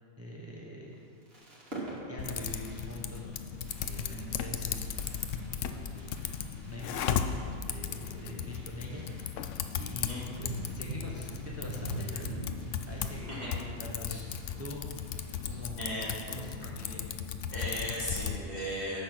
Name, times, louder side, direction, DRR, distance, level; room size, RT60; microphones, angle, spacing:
voice 1, 0.2-1.0 2.1-3.3 3.8-5.0 5.4-6.0 6.6-7.1 7.7-9.0 9.8-12.5 12.9-13.5 13.8-14.9 15.5-15.8 16.3-17.1, equal, 15° right, -3 dB, 1.0 m, -44 dB
Fireworks, 0.9-16.0 16.3-16.4 16.6-16.9, right 1 dB, 55° right, 2.3 m, -51 dB
Typing, 2.2-18.4, left 8 dB, 90° left, 1.0 m, -36 dB
sound 1, 10.3-14.1 14.6-16.0 16.6-16.7 17.8-17.9, right 1 dB, 90° right, 1.6 m, -41 dB
voice 2, 15.5-16.1 17.5-19.0, equal, 35° left, -9 dB, 3.2 m, -37 dB
9.6 x 6.9 x 6.0 m, 2.3 s
omnidirectional pair, 1.2 m